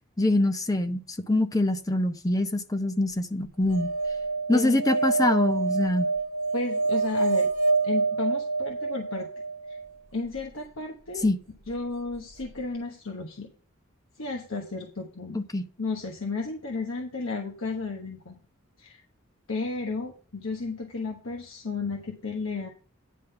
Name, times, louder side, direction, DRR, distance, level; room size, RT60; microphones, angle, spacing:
voice 1, 0.2-1.0 1.3-3.9 4.5-6.1 11.2-11.4 15.3-15.6, left 1 dB, 15° left, 0.7 m, -24 dB
sound 1, 3.7-9.9 12.1-12.2 12.4-12.5, right 3 dB, 40° right, 0.7 m, -27 dB
voice 2, 6.5-7.5 7.8-9.3 9.7-9.8 10.1-11.3 11.7-13.5 14.2-15.4 15.8-18.4 18.8-19.0 19.5-22.7, left 3 dB, 80° left, 1.2 m, -33 dB
10.0 x 3.8 x 6.7 m
head